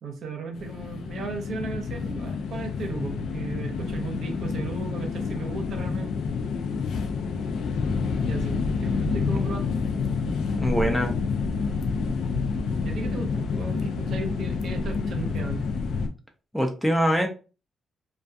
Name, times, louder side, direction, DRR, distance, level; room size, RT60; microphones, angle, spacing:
voice 1, 0.0-6.2 8.2-9.8 12.8-15.6, right 4 dB, 65° right, 0.7 m, -35 dB
sound 1, 0.5-16.1, left 5 dB, 85° left, 0.3 m, -28 dB
voice 2, 10.5-11.1 16.5-17.3, equal, 5° left, 0.4 m, -24 dB
2.3 x 2.3 x 2.5 m
cardioid pair, 140°, 0 cm